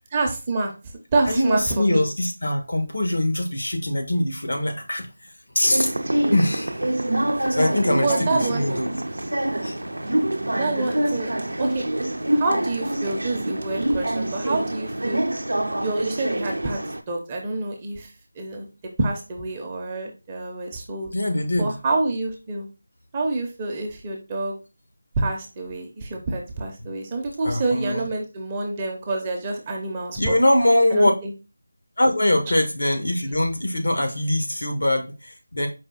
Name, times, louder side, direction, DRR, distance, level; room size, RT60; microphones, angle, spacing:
voice 1, 0.1-0.7 1.1-2.0 7.8-8.7 10.5-11.3 11.6-11.8 12.3-15.2 15.7-18.1 18.4-18.7 19.0-21.1 21.6-22.7 23.1-24.5 25.2-30.4 30.9-31.3, right 2 dB, 20° right, 1 dB, 0.7 m, -27 dB
voice 2, 1.2-5.1 5.5-5.9 6.3-6.8 7.5-8.9 9.6-9.8 21.1-21.8 26.8-26.9 27.4-28.2 30.2-31.1 32.0-35.7, left 1 dB, 75° left, 3 dB, 1.3 m, -22 dB
sound 1, 5.6-17.0, right 1 dB, 90° right, 0.5 m, -26 dB
4.8 x 2.3 x 3.7 m, 0.29 s
figure-of-eight pair, 170°, 0 cm